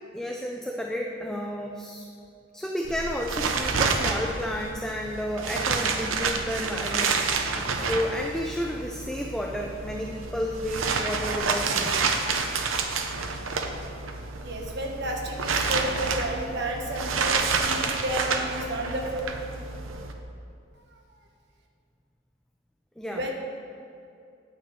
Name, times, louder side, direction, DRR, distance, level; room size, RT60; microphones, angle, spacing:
voice 1, 0.1-2.1 2.5-7.2 7.7-12.1 23.0-23.2, equal, 5° left, 0 dB, 0.4 m, -31 dB
sound 1, 2.8-20.1, right 4 dB, 85° right, 0.7 m, -29 dB
voice 2, 14.4-19.2 23.1-23.3, right 1 dB, 55° right, 1 dB, 1.3 m, -31 dB
9.2 x 4.4 x 7.6 m, 2.5 s
head